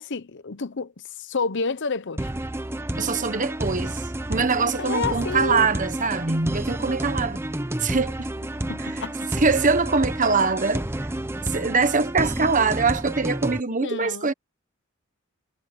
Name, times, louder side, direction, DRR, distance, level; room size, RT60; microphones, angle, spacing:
voice 1, 0.0-2.3 4.6-5.8 8.7-9.3 13.8-14.3, left 4 dB, 55° left, 0.8 m, -30 dB
sound 1, 2.2-13.6, right 1 dB, 10° right, 0.7 m, -30 dB
voice 2, 3.0-4.0 4.3-7.4 7.8-8.1 9.3-10.8 11.4-14.3, right 4 dB, 35° right, 1.3 m, -23 dB
head